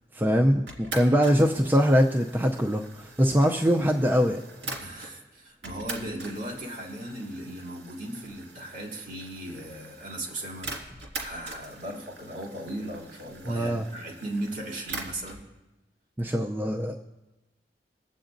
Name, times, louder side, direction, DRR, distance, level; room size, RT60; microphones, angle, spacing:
voice 1, 0.1-4.7 13.5-13.8 16.2-16.9, equal, 10° right, 1 dB, 0.5 m, -23 dB
sound 1, 0.7-5.1 5.6-15.4, right 3 dB, 75° right, 2.2 m, -43 dB
voice 2, 4.8-10.7 11.2-15.5, right 1 dB, 45° right, -2 dB, 2.7 m, -37 dB
23.5 x 7.9 x 2.6 m, 1.0 s
head